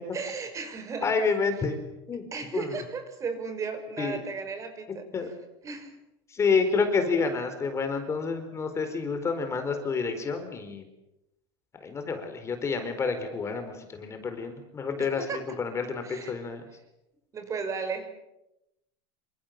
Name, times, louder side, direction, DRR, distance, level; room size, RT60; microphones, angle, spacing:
voice 1, 0.1-1.1 2.3-5.1 5.6-5.9 15.0-16.4 17.3-18.1, right 5 dB, 25° right, 8 dB, 5.7 m, -35 dB
voice 2, 1.0-1.8 2.1-2.3 2.5-2.7 4.0-4.2 5.1-5.3 6.3-10.8 11.8-16.6, left 5 dB, 20° left, 7 dB, 4.4 m, -29 dB
28.0 x 26.5 x 7.7 m, 0.90 s
supercardioid pair, 145°, 13 cm